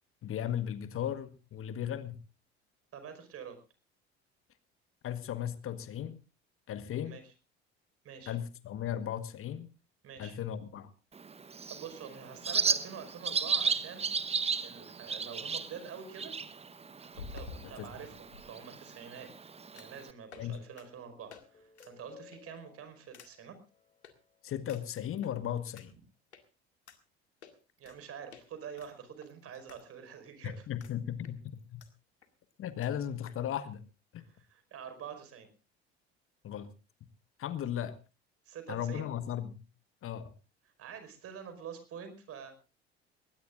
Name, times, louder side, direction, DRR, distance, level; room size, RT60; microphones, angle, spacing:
voice 1, 0.2-2.2 5.0-6.2 6.7-7.2 8.3-9.7 10.2-10.9 17.6-17.9 20.4-20.6 24.4-25.9 30.4-31.8 32.6-33.8 34.1-34.3 36.4-36.7 37.4-38.0 38.7-39.6 40.0-40.3, left 10 dB, 40° left, 13 dB, 1.4 m, -36 dB
voice 2, 2.9-3.6 6.9-7.3 8.0-8.4 10.0-10.4 11.7-14.1 14.6-16.3 17.0-19.3 19.7-23.6 27.8-30.6 34.2-35.5 38.5-39.1 40.8-42.5, right 7 dB, 45° right, 9 dB, 5.1 m, -46 dB
Bird, 11.1-20.1, right 5 dB, 20° right, 1.1 m, -35 dB
sound 1, 14.7-14.8 17.1-18.4 19.8-20.0 20.3-20.5 20.8-20.9 21.3-21.4 21.7-21.9 22.3-22.6 23.1-23.3 24.0-24.1 24.7-25.3 25.8-25.9 26.3-26.4 26.9-27.0 27.4-28.0 28.3-28.4 28.8-29.8 30.1-30.2 30.8-30.9 31.2-31.9 32.2-32.3 32.5-32.6 32.8-32.9 33.3-33.4, left 5 dB, 80° left, 2.1 m, -50 dB
sound 2, 20.3-24.9, left 6 dB, 20° left, 3.0 m, -60 dB
21.0 x 19.0 x 2.5 m, 0.32 s
figure-of-eight pair, 65°, 33 cm